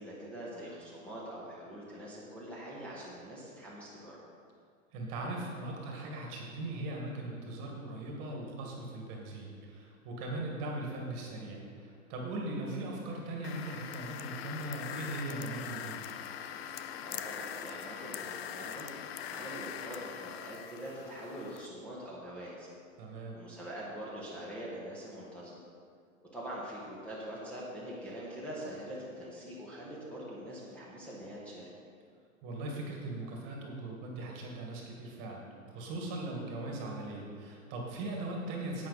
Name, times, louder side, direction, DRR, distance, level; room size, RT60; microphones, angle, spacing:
voice 1, 0.0-4.2 17.0-18.9 19.3-22.7 23.3-25.6 26.3-31.6, right 1 dB, 5° left, -7 dB, 1.6 m, -44 dB
voice 2, 4.9-16.0 23.0-23.4 32.4-38.9, right 2 dB, 35° right, 0 dB, 2.0 m, -39 dB
sound 1, 13.4-21.7, left 9 dB, 45° left, 0.6 m, -42 dB
11.0 x 8.7 x 4.2 m, 2.1 s
hypercardioid pair, 140°, 42 cm